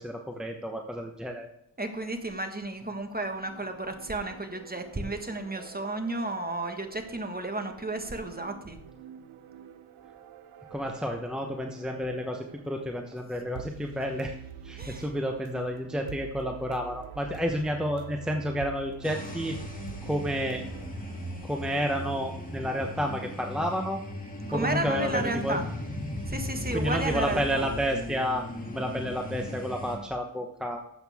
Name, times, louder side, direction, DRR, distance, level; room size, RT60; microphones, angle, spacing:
voice 1, 0.0-1.5 10.7-14.3 14.6-19.6 20.0-20.6 21.4-24.0 24.5-25.6 26.7-30.8, equal, ahead, 3 dB, 1.0 m, -30 dB
voice 2, 1.8-8.8 14.8-15.1 24.5-25.6 26.3-27.6, right 2 dB, 20° right, 6 dB, 1.5 m, -32 dB
sound 1, 3.4-20.9, right 9 dB, 90° right, 0.8 m, -47 dB
sound 2, 19.0-30.0, left 1 dB, 15° left, 2.6 m, -37 dB
12.5 x 8.0 x 3.6 m, 0.79 s
cardioid pair, 95°, 49 cm